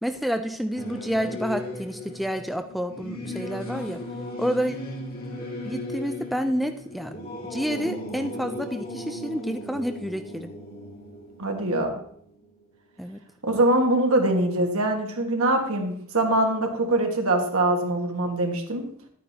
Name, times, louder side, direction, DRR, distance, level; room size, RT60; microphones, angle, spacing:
voice 1, 0.0-4.0 4.4-4.8 5.6-7.1 7.5-10.5 13.0-13.2, equal, ahead, 6 dB, 0.3 m, -29 dB
Singing / Musical instrument, 0.7-12.6, left 1 dB, 45° left, 2.0 m, -37 dB
voice 2, 11.4-11.9 13.4-18.8, right 1 dB, 70° right, 3 dB, 1.6 m, -23 dB
11.0 x 9.2 x 2.8 m, 0.65 s
head